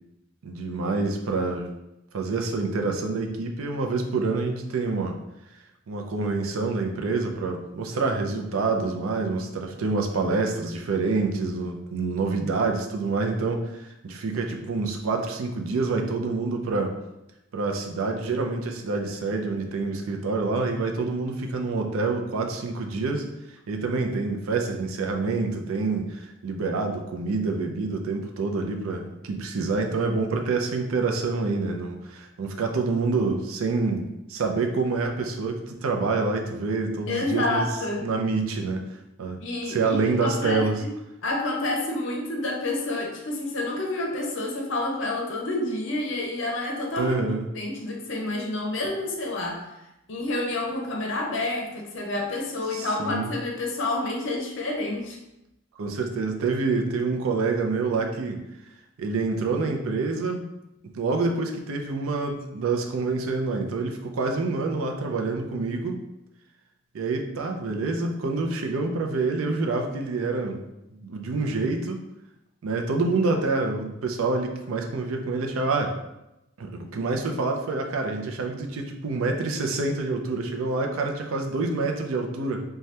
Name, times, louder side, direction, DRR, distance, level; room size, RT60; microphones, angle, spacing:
voice 1, 0.4-1.7 2.1-5.2 5.9-16.9 17.5-23.3 23.7-37.7 38.0-38.8 39.2-39.4 39.7-40.8 47.0-47.5 52.7-53.3 55.8-58.4 59.0-60.5 60.9-66.0 66.9-70.6 70.9-72.0 72.6-75.9 76.6-82.6, right 3 dB, 85° right, 3 dB, 0.4 m, -27 dB
voice 2, 37.1-38.1 39.4-40.9 41.2-47.1 47.5-49.6 50.1-55.2, left 2 dB, 60° left, 0 dB, 0.6 m, -29 dB
2.7 x 2.2 x 3.2 m, 0.90 s
head